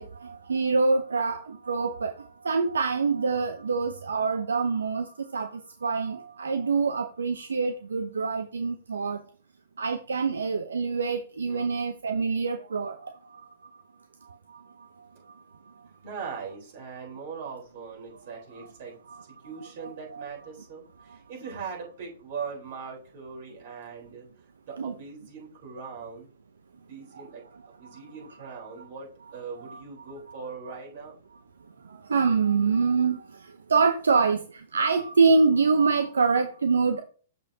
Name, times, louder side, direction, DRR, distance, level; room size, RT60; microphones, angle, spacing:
voice 1, 0.0-9.2 9.8-13.4 14.2-14.9 18.6-18.7 19.1-19.2 19.6-19.7 20.1-20.3 24.8-24.9 27.1-27.2 27.9-28.0 28.8-28.9 29.3-29.4 29.7-30.8 31.8-37.0, right 4 dB, 85° right, 7 dB, 0.6 m, -26 dB
voice 2, 16.0-19.0 19.4-24.3 24.7-26.3 26.8-27.4 27.8-31.2, right 5 dB, 55° right, -2 dB, 3.8 m, -40 dB
6.7 x 6.6 x 2.8 m, 0.40 s
hypercardioid pair, 120°, 0 cm